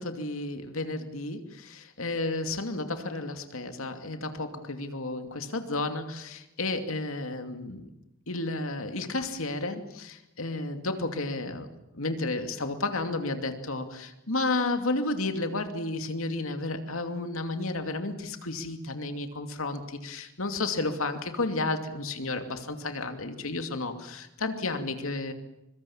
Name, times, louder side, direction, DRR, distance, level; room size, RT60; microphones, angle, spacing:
voice 1, 0.0-7.9 8.3-11.7 11.9-25.3, left 2 dB, 80° left, 7 dB, 2.6 m, -32 dB
24.5 x 23.0 x 7.3 m, 0.88 s
head